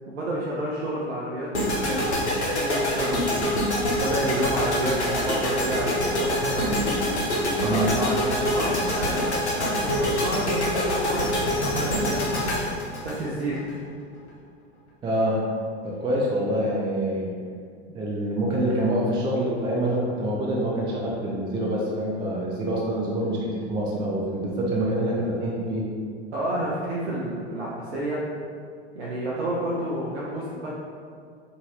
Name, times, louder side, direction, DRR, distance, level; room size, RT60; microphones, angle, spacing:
voice 1, 0.0-3.4 4.0-6.8 7.6-12.6 13.0-13.6 26.3-28.2 28.9-30.7, right 1 dB, 80° right, -6 dB, 0.6 m, -30 dB
sound 1, 1.5-13.7, left 1 dB, 90° left, 0.7 m, -25 dB
voice 2, 15.0-15.4 15.8-17.4 17.9-25.8, right 1 dB, 15° right, -4 dB, 0.4 m, -26 dB
2.7 x 2.6 x 3.0 m, 2.2 s
figure-of-eight pair, 90°, 33 cm